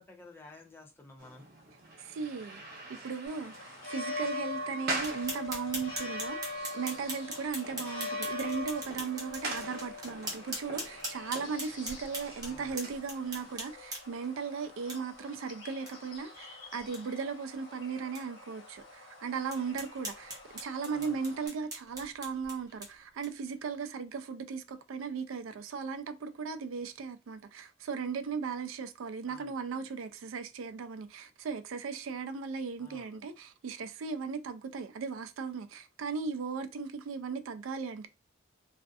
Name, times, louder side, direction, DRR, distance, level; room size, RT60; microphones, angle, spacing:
voice 1, 0.0-1.5 12.4-12.9 20.9-21.2 29.3-29.8 32.8-33.2, left 2 dB, 10° left, 0.4 m, -53 dB
sound 1, 1.2-13.6, right 2 dB, 50° right, 0.7 m, -44 dB
voice 2, 2.0-2.6 2.9-38.1, right 5 dB, 85° right, 0.4 m, -37 dB
sound 2, 3.3-21.5, left 2 dB, 60° left, 1.0 m, -43 dB
sound 3, 4.9-14.3 14.9-15.0 15.4-15.5 15.9-16.0 16.3-16.4 16.8-17.0 17.5-17.6 18.2-18.3 18.8-18.9 19.5-23.5, right 1 dB, 20° right, 0.8 m, -42 dB
2.5 x 2.4 x 2.3 m
head